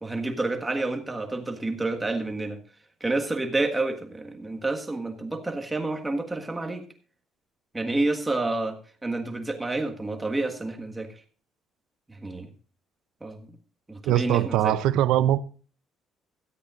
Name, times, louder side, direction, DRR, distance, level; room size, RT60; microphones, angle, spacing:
voice 1, 0.0-2.6 3.0-6.8 7.7-8.8 9.0-11.1 12.1-12.5 13.2-13.5 13.9-14.7, right 2 dB, 10° right, 1.6 m, -29 dB
voice 2, 14.1-15.4, right 12 dB, 80° right, 0.5 m, -22 dB
16.5 x 13.5 x 2.5 m
cardioid pair, 170°, 0 cm